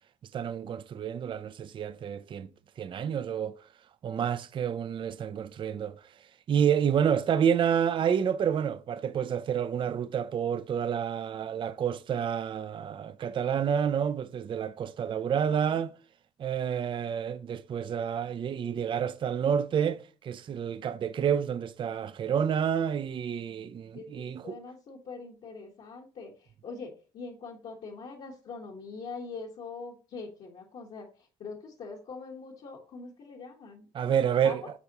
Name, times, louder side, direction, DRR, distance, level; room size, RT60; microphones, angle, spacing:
voice 1, 0.3-2.5 2.8-3.6 4.0-6.0 6.5-15.9 16.4-24.5 33.9-34.6, right 8 dB, 40° right, 0.5 m, -29 dB
voice 2, 15.3-15.8 23.9-34.2 34.4-34.7, left 4 dB, 60° left, 1.4 m, -43 dB
8.1 x 4.2 x 3.0 m
cardioid pair, 95°, 12 cm